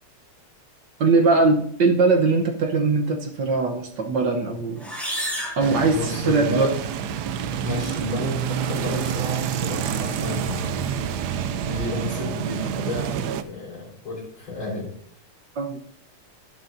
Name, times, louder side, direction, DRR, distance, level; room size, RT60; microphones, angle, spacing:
voice 1, 1.0-4.9 5.6-6.7 15.6-15.8, right 3 dB, 60° right, 3 dB, 1.5 m, -21 dB
sound 1, 4.8-6.6, equal, ahead, 4.1 m, -32 dB
sound 2, 5.6-13.4, right 8 dB, 80° right, 0.9 m, -28 dB
voice 2, 5.8-6.8 7.6-10.8 11.6-14.9, left 2 dB, 65° left, -3 dB, 5.4 m, -31 dB
12.0 x 11.0 x 2.6 m, 0.65 s
omnidirectional pair, 2.4 m